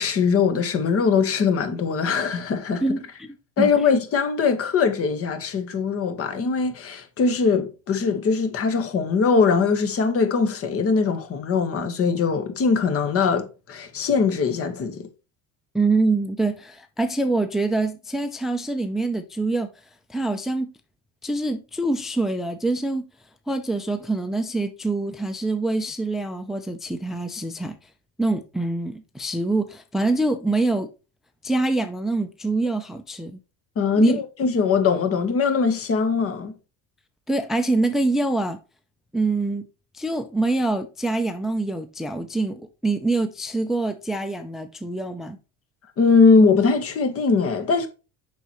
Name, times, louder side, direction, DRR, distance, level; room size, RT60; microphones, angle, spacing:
voice 1, 0.0-2.8 3.6-15.1 33.8-36.5 46.0-47.9, left 5 dB, 40° left, 1.4 m, -21 dB
voice 2, 2.8-3.3 3.6-3.7 15.7-19.7 20.1-20.7 21.2-23.0 23.5-27.8 28.2-30.9 31.4-33.4 34.0-34.2 37.3-38.6 39.1-39.6 39.9-45.4, right 2 dB, ahead, 0.5 m, -25 dB
7.0 x 5.8 x 3.1 m
cardioid pair, 130°, 36 cm